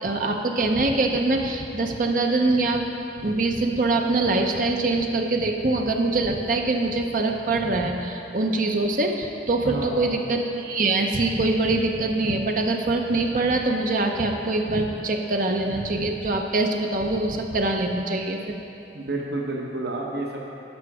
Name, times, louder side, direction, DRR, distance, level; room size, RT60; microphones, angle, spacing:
voice 1, 0.0-2.9 3.2-18.5, right 2 dB, 45° right, 3 dB, 0.6 m, -24 dB
voice 2, 9.6-10.2 18.9-20.5, right 2 dB, 65° right, -2 dB, 1.0 m, -30 dB
11.5 x 5.8 x 4.8 m, 2.8 s
head